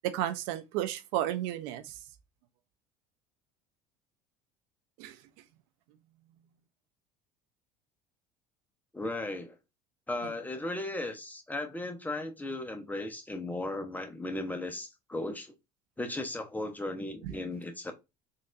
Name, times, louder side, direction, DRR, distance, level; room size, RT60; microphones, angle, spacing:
voice 1, 0.0-2.0 5.0-5.2 17.2-17.3, right 12 dB, 70° right, 0.4 m, -33 dB
voice 2, 8.9-9.5 10.1-15.5 16.0-17.9, left 2 dB, 10° left, 0.7 m, -36 dB
3.9 x 2.5 x 2.3 m
hypercardioid pair, 80°, 18 cm